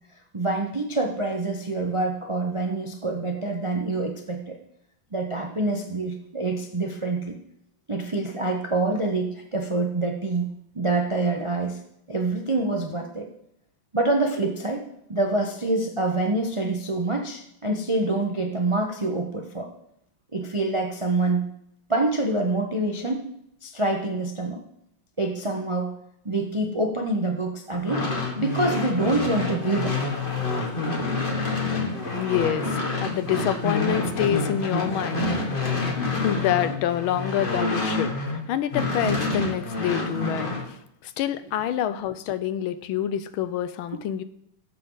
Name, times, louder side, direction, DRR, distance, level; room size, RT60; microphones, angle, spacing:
voice 1, 0.3-4.6 5.1-7.3 7.9-11.8 12.1-13.3 13.9-19.7 20.3-21.4 21.9-23.3 23.6-24.6 25.2-25.9 26.2-28.1 28.4-29.9, right 2 dB, 30° right, 2 dB, 0.5 m, -26 dB
sound 1, 27.7-38.4 38.7-40.6, left 3 dB, 30° left, 1.6 m, -27 dB
voice 2, 32.1-35.5 36.1-44.2, left 11 dB, 85° left, 12 dB, 1.5 m, -27 dB
17.0 x 7.7 x 3.9 m, 0.76 s
omnidirectional pair, 2.2 m